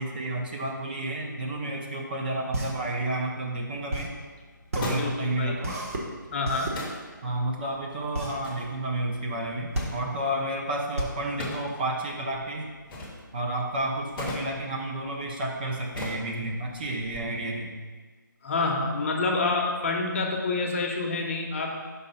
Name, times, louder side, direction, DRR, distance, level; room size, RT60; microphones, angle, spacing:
voice 1, 0.0-4.1 4.7-5.7 7.2-12.7 13.3-17.7, right 1 dB, 25° right, 0 dB, 0.6 m, -31 dB
sound 1, 2.5-12.4, right 1 dB, 45° right, 1.0 m, -34 dB
sound 2, 3.5-17.2, left 1 dB, 10° left, 0.8 m, -42 dB
voice 2, 4.9-5.6 6.3-6.7 18.4-21.8, left 3 dB, 35° left, 1 dB, 0.8 m, -28 dB
5.4 x 3.7 x 5.4 m, 1.4 s
hypercardioid pair, 165°, 11 cm